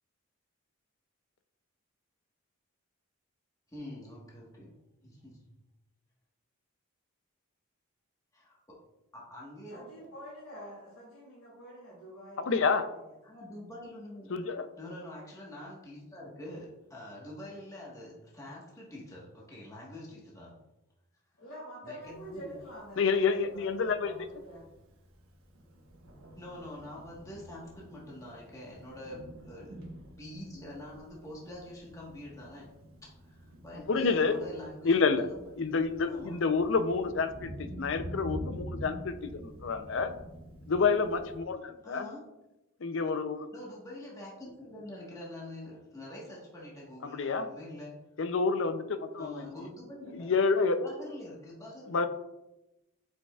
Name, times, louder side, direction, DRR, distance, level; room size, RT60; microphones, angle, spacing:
voice 1, 3.7-5.5 8.3-8.8 9.1-10.1 13.2-14.3 14.8-20.6 21.8-22.6 24.6-24.7 26.4-29.8 30.2-35.4 36.0-36.4 41.8-42.2 43.5-48.1 49.2-50.3 50.8-52.1, left 1 dB, 15° left, -4 dB, 1.3 m, -45 dB
voice 2, 9.7-12.7 13.1-13.2 21.4-24.7, equal, 85° left, -8 dB, 2.2 m, -47 dB
voice 3, 12.5-12.8 14.3-14.7 23.0-24.1 33.9-34.4 34.8-35.3 35.6-37.5 37.8-40.1 40.7-42.0 42.8-43.5 47.1-47.5 48.2-49.4 50.1-50.8 51.9-52.1, left 4 dB, 60° left, 10 dB, 0.5 m, -28 dB
Thunder, 22.0-41.4, equal, 80° right, 1.1 m, -47 dB
8.1 x 5.1 x 2.4 m, 0.95 s
head